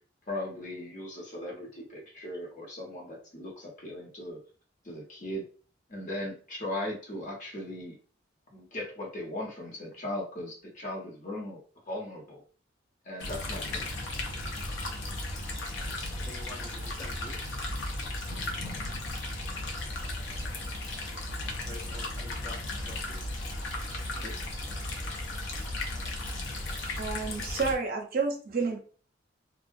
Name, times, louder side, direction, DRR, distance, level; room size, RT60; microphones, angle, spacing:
voice 1, 0.3-4.4 4.8-5.4 5.9-7.9 8.5-11.6 11.9-12.4 13.1-13.8, left 1 dB, 40° left, -1 dB, 0.8 m, -38 dB
sound 1, 13.2-27.7, left 2 dB, 65° left, 0.5 m, -35 dB
voice 2, 16.2-17.4 21.7-23.3 24.2-24.7, left 2 dB, 20° left, -1 dB, 0.4 m, -47 dB
voice 3, 27.0-28.8, right 4 dB, 50° right, 3 dB, 0.6 m, -30 dB
2.3 x 2.0 x 2.6 m, 0.40 s
head